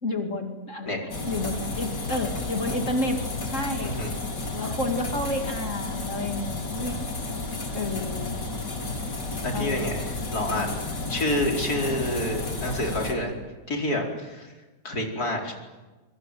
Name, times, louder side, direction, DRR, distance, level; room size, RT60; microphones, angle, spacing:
voice 1, 0.0-3.2 3.4-4.0 4.5-7.0 7.7-8.4 9.5-9.9, left 1 dB, 45° left, 3 dB, 2.8 m, -30 dB
sound 1, 1.1-13.1, left 3 dB, 90° left, 3.9 m, -32 dB
voice 2, 3.8-4.1 9.4-13.3 13.7-14.5 14.9-15.5, left 1 dB, 65° left, 1 dB, 5.2 m, -28 dB
26.0 x 24.5 x 9.2 m, 1.2 s
omnidirectional pair, 1.8 m